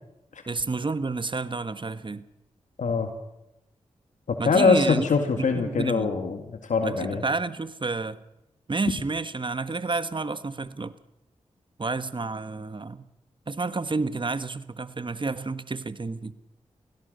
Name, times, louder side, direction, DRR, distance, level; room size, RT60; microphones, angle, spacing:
voice 1, 0.5-2.2 4.4-6.1 6.8-8.2 8.7-10.9 11.8-13.1 13.5-16.3, right 3 dB, 40° right, 13 dB, 1.4 m, -30 dB
voice 2, 2.8-3.1 4.3-7.2, left 4 dB, 75° left, 6 dB, 2.1 m, -23 dB
24.0 x 16.5 x 6.7 m, 0.92 s
cardioid pair, 40°, 13 cm